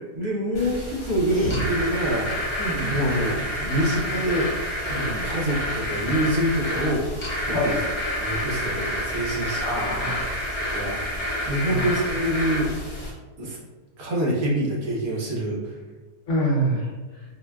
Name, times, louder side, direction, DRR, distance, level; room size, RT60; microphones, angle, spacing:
voice 1, 0.1-2.6 2.9-4.5 4.8-7.8 8.1-9.9 10.7-12.7 13.4-13.6 14.0-15.7, equal, 70° right, -4 dB, 1.2 m, -26 dB
sound 1, 0.5-13.1, equal, 25° left, 0.7 m, -29 dB
voice 2, 2.6-2.9 5.0-5.3 7.5-7.8 9.6-10.5 11.7-11.9 16.3-16.9, right 1 dB, 55° left, -6 dB, 1.1 m, -26 dB
4.2 x 2.1 x 2.2 m, 1.3 s
omnidirectional pair, 1.7 m